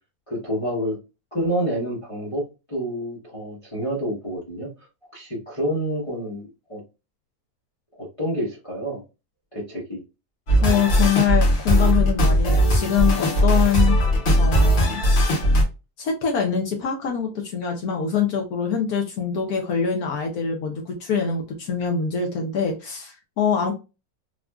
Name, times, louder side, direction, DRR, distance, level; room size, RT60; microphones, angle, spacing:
voice 1, 0.3-1.0 1.3-4.7 5.0-6.8 8.0-9.0 9.5-10.0, equal, 25° left, 0.8 m, -28 dB
sound 1, 10.5-15.6, equal, 60° left, 1.4 m, -18 dB
voice 2, 10.6-14.0 14.4-15.1 16.0-23.7, left 7 dB, 75° left, 1.1 m, -24 dB
3.6 x 2.4 x 2.2 m
omnidirectional pair, 1.6 m